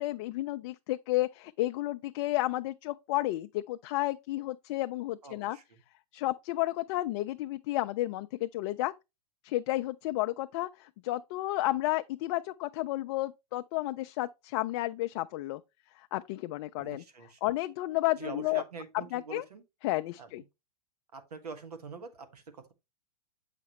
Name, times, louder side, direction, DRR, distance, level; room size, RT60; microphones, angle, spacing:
voice 1, 0.0-5.6 6.1-8.9 9.4-15.6 16.0-17.0 17.4-18.6 19.1-19.4 19.8-20.4, left 17 dB, 45° left, 0.4 m, -32 dB
voice 2, 5.2-5.8 16.8-17.4 18.2-19.6 20.2-20.3 21.1-22.7, right 4 dB, 85° right, 1.7 m, -44 dB
7.5 x 5.8 x 3.0 m
hypercardioid pair, 120°, 20 cm